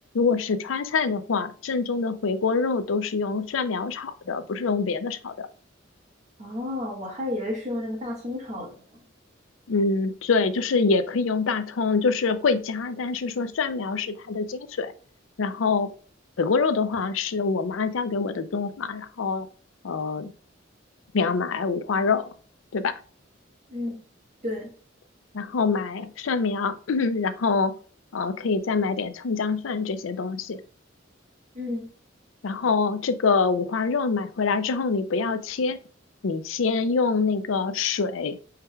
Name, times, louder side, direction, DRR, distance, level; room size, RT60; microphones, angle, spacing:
voice 1, 0.1-5.5 9.7-14.9 15.4-15.9 16.4-19.5 19.8-20.3 21.1-22.3 22.7-22.9 25.3-27.7 28.1-30.6 32.4-35.8 36.2-38.4, left 4 dB, 90° left, 11 dB, 0.5 m, -25 dB
voice 2, 6.4-9.0 23.7-24.0 24.4-24.7 31.5-31.9, left 1 dB, 40° right, 0 dB, 1.5 m, -32 dB
4.7 x 4.6 x 2.2 m, 0.42 s
head